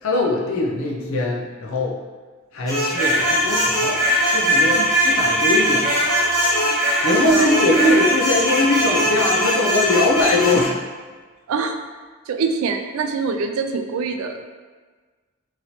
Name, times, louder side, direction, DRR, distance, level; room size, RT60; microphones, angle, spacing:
voice 1, 0.0-2.0 2.5-4.0 4.3-6.1 7.0-10.8, left 2 dB, 75° left, -2 dB, 0.5 m, -21 dB
sound 1, 2.7-10.6, equal, 20° left, 1.4 m, -20 dB
voice 2, 11.5-11.8 12.3-14.4, right 5 dB, 85° right, 6 dB, 0.3 m, -24 dB
3.0 x 2.8 x 2.7 m, 1.4 s
head